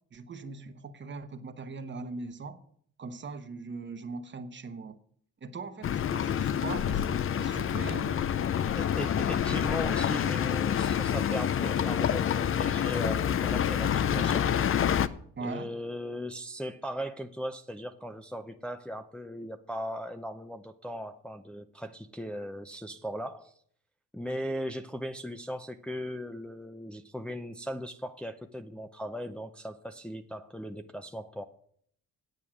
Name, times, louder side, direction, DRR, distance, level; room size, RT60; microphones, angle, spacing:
voice 1, 0.1-2.6 3.0-5.0 5.4-8.2 15.4-15.7, right 4 dB, 40° right, 9 dB, 1.1 m, -40 dB
sound 1, 5.8-15.1, left 9 dB, 45° left, 0.6 m, -27 dB
voice 2, 8.8-14.5 15.4-23.5 24.1-31.4, equal, 5° left, 5 dB, 0.6 m, -38 dB
9.2 x 8.4 x 6.2 m, 0.62 s
cardioid pair, 90°, 30 cm